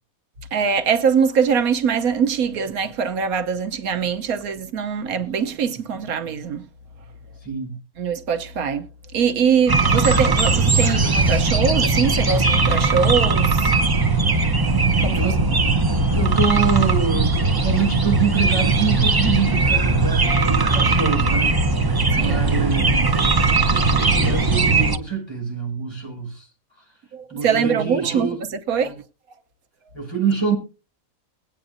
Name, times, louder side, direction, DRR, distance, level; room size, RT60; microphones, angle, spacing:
voice 1, 0.5-6.6 8.0-8.8 9.1-13.7 15.0-15.2 22.2-22.4 27.1-28.9, right 7 dB, 85° right, 1.4 m, -22 dB
voice 2, 7.4-7.8 15.1-15.5 16.1-21.6 22.2-23.5 23.9-26.5 27.3-28.5 28.8-28.9 29.9-30.5, right 6 dB, 20° left, 5.5 m, -26 dB
sound 1, 9.7-25.0, right 3 dB, 30° right, 0.4 m, -19 dB
21.5 x 8.9 x 2.6 m
omnidirectional pair, 1.5 m